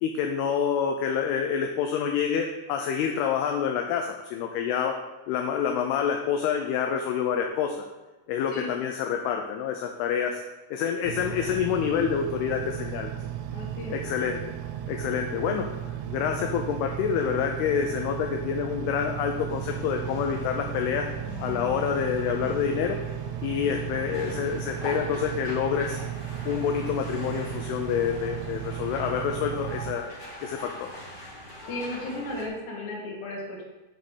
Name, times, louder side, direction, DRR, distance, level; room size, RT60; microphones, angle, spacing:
voice 1, 0.0-4.9 5.3-7.8 8.3-10.4 10.7-13.1 13.9-14.4 14.9-15.7 16.1-21.1 21.4-23.0 23.4-26.0 26.5-30.1 30.4-30.9, left 7 dB, 80° left, 3 dB, 2.4 m, -27 dB
Engine, 11.0-29.9, right 10 dB, 80° right, 2.5 m, -35 dB
voice 2, 13.5-14.0 31.7-33.6, left 1 dB, 55° left, -3 dB, 2.8 m, -35 dB
sound 1, 19.5-32.5, left 1 dB, 25° left, 2.2 m, -42 dB
7.5 x 5.2 x 6.2 m, 1.1 s
omnidirectional pair, 5.0 m